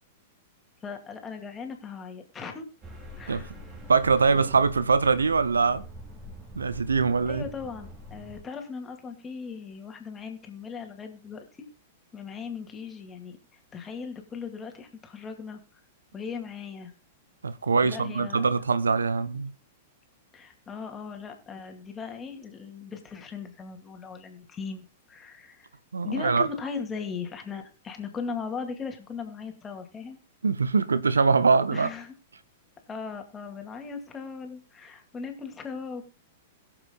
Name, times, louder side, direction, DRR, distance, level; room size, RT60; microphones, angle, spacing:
voice 1, 0.8-2.7 3.2-3.5 7.3-11.4 12.1-13.4 13.7-15.6 16.1-16.9 17.8-18.5 20.3-25.7 26.0-30.2 31.7-32.1 32.9-36.0, left 5 dB, 20° left, 2.3 m, -38 dB
sound 1, 2.8-8.4, equal, 20° right, 2.8 m, -44 dB
voice 2, 3.9-5.9 6.5-7.5 17.4-19.5 25.9-26.5 30.4-31.9, right 4 dB, 75° right, 0.7 m, -23 dB
21.5 x 7.2 x 2.3 m
figure-of-eight pair, 100°, 0 cm